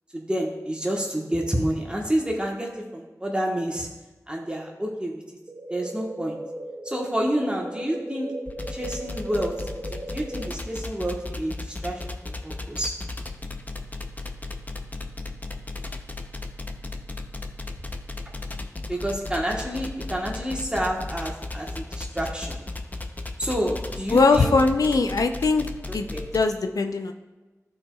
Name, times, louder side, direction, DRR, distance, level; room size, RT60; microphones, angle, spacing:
voice 1, 0.1-3.9 4.3-5.2 5.7-6.4 6.8-8.3 8.7-12.9 18.9-22.6 23.4-24.5 25.9-26.2, equal, 15° right, -2 dB, 1.2 m, -29 dB
sound 1, 5.5-10.5, right 1 dB, 50° right, 0.9 m, -37 dB
sound 2, 8.5-26.4, left 2 dB, 30° left, 0.6 m, -35 dB
voice 2, 24.1-25.7 25.9-26.0 26.3-27.1, left 3 dB, 85° left, 6 dB, 0.4 m, -20 dB
13.5 x 4.5 x 2.3 m, 1.2 s
wide cardioid pair, 45°, 6 cm